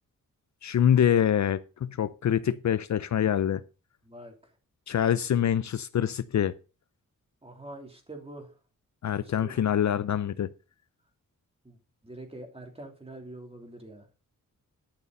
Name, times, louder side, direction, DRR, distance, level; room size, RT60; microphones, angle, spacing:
voice 1, 0.6-3.6 4.9-6.5 9.0-10.5, left 9 dB, 60° left, 0.6 m, -25 dB
voice 2, 4.0-4.5 7.4-8.5 9.4-9.7 11.6-11.8 12.0-14.1, right 1 dB, 20° right, 3.1 m, -45 dB
11.5 x 6.9 x 5.3 m
wide cardioid pair, 120°, 33 cm